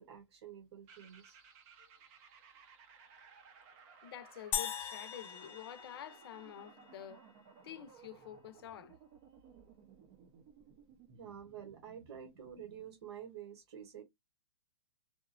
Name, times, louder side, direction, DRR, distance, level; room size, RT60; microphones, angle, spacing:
voice 1, 0.0-1.4 11.2-14.0, right 9 dB, 65° right, 1.0 m, -49 dB
sound 1, 0.9-12.9, right 6 dB, 30° right, 0.6 m, -60 dB
voice 2, 4.0-7.3 7.6-9.0, left 10 dB, 55° left, 0.6 m, -49 dB
sound 2, 4.5-7.0, left 10 dB, 15° left, 0.4 m, -40 dB
2.8 x 2.2 x 2.4 m
hypercardioid pair, 150°, 15 cm